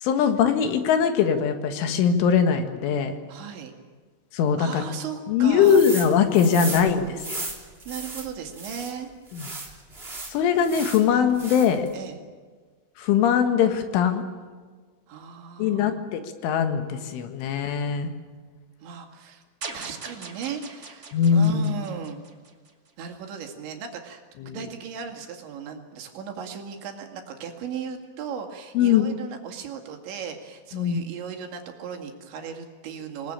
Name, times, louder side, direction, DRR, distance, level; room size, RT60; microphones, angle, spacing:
voice 1, 0.0-3.1 4.3-4.8 5.3-7.4 9.3-9.5 10.3-11.9 13.0-14.2 15.6-18.1 21.1-21.7 24.4-24.6 28.8-29.1 30.7-31.1, left 7 dB, 80° left, 7 dB, 4.1 m, -21 dB
voice 2, 3.3-3.7 4.6-5.8 6.4-9.1 11.1-11.3 11.9-12.2 15.1-16.0 18.8-19.4 19.7-21.0 21.3-22.2 23.0-33.3, right 7 dB, 70° right, 4 dB, 4.4 m, -37 dB
sound 1, 5.6-6.1 6.3-8.9 9.3-11.0 11.3-11.9, right 2 dB, 15° right, 2.7 m, -35 dB
sound 2, 19.6-22.9, right 4 dB, 45° right, 1.1 m, -41 dB
27.0 x 19.5 x 8.9 m, 1.5 s
omnidirectional pair, 5.6 m